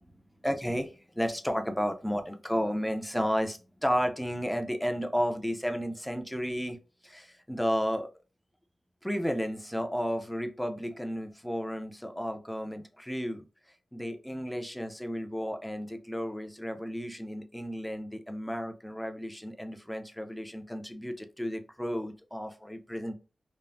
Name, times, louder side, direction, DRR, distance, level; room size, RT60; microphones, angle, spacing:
voice 1, 0.4-6.8 7.0-8.1 9.0-13.4 13.9-23.1, equal, 5° left, 5 dB, 0.4 m, -33 dB
3.3 x 2.0 x 2.4 m, 0.34 s
wide cardioid pair, 75°, 0 cm